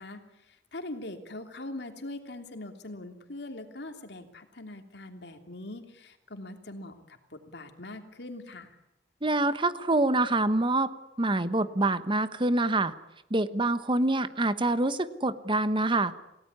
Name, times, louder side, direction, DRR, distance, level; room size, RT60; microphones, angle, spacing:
voice 1, 0.0-8.8, left 2 dB, 70° left, 6 dB, 3.1 m, -42 dB
voice 2, 9.2-10.9 11.2-12.9 13.3-16.1, right 2 dB, 30° right, 12 dB, 1.1 m, -26 dB
28.5 x 18.0 x 9.7 m, 0.89 s
head